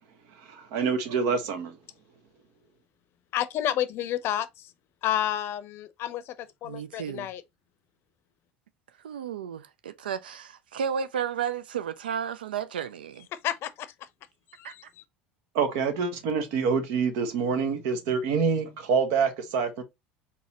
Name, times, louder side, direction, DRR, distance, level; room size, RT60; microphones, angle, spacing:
voice 1, 0.4-1.8 15.5-19.8, right 5 dB, 65° right, 1.1 m, -26 dB
voice 2, 3.3-4.7 5.0-7.4 13.3-13.9 14.5-14.8, left 11 dB, 50° left, 0.6 m, -30 dB
voice 3, 6.6-7.3 9.0-13.3 14.6-14.7, right 8 dB, 80° right, 0.4 m, -33 dB
4.2 x 4.1 x 2.8 m
hypercardioid pair, 70°, 5 cm